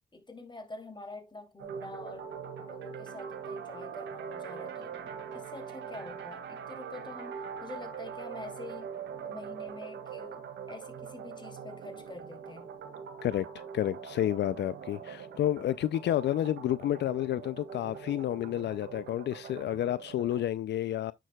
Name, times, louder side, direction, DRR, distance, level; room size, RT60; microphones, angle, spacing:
voice 1, 0.1-2.3 2.6-8.9 9.2-12.7, left 2 dB, 25° left, 2.7 m, -46 dB
sound 1, 1.6-20.5, right 7 dB, 85° right, 2.1 m, -43 dB
voice 2, 13.7-21.1, left 12 dB, 70° left, 0.4 m, -30 dB
9.8 x 6.6 x 2.3 m
cardioid pair, 60°, 19 cm